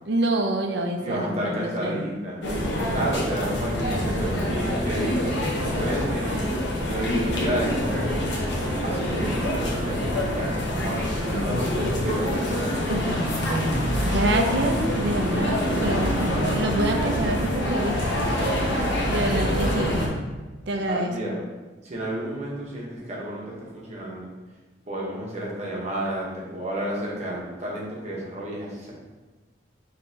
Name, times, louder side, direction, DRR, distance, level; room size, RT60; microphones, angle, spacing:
voice 1, 0.1-2.1 2.8-3.1 12.9-18.2 19.1-20.0 20.7-21.1, right 1 dB, 65° right, 3 dB, 0.5 m, -27 dB
voice 2, 1.0-2.4 2.9-5.4 5.8-8.4 8.8-12.8 20.9-21.4 21.8-24.3 24.9-28.9, right 1 dB, 40° right, -5 dB, 1.1 m, -31 dB
sound 1, 2.4-20.1, equal, 65° left, 0.9 m, -26 dB
5.3 x 3.2 x 2.8 m, 1.2 s
head